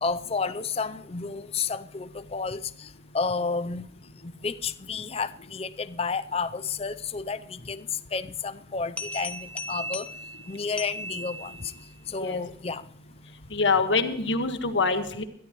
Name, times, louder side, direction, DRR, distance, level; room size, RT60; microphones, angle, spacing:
voice 1, 0.0-3.8 4.4-10.1 10.5-11.7 12.1-12.8, left 4 dB, 30° left, 12 dB, 0.5 m, -31 dB
sound 1, 9.0-11.9, left 1 dB, 5° left, 1.1 m, -37 dB
voice 2, 13.5-15.2, left 4 dB, 80° left, 7 dB, 1.6 m, -25 dB
22.0 x 13.5 x 3.1 m, 0.69 s
head